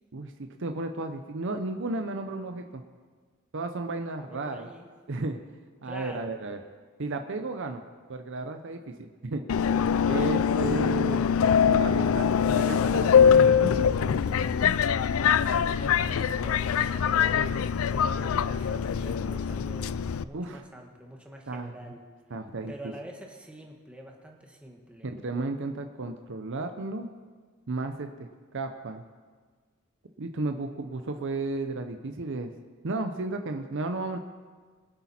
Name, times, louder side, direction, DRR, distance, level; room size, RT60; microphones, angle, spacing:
voice 1, 0.1-2.8 3.5-4.7 5.1-5.4 5.8-6.6 7.0-7.8 8.1-9.4 10.1-11.3 11.6-13.9 20.3-20.6 21.5-21.7 22.3-22.9 25.0-27.1 27.7-29.0 30.2-32.5 32.8-34.2, right 2 dB, 60° right, 6 dB, 0.7 m, -33 dB
voice 2, 4.2-4.9 5.8-6.3 10.0-10.4 15.3-22.0 22.7-25.1, right 1 dB, 5° right, 0 dB, 1.5 m, -46 dB
Subway metro underground, 9.5-20.2, left 7 dB, 70° left, 0.4 m, -23 dB
23.5 x 8.3 x 4.3 m, 1.5 s
head